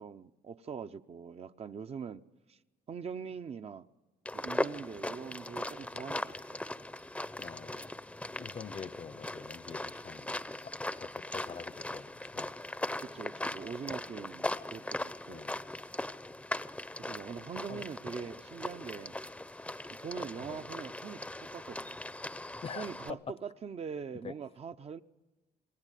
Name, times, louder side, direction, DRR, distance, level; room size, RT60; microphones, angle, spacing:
voice 1, 0.0-2.2 2.5-2.6 2.9-3.9 4.3-6.6 13.0-15.5 17.0-19.1 20.0-22.0 22.7-25.0, right 6 dB, 35° right, 0.8 m, -43 dB
sound 1, 4.3-23.1, left 1 dB, 5° left, 0.8 m, -39 dB
voice 2, 7.4-7.9 8.4-10.3 10.6-12.5 15.3-15.6 17.7-17.9 18.2-18.3 20.4-20.7 22.6-23.2 24.2-24.3, left 6 dB, 35° left, 0.8 m, -46 dB
27.5 x 19.5 x 9.2 m
cardioid pair, 110°, 17 cm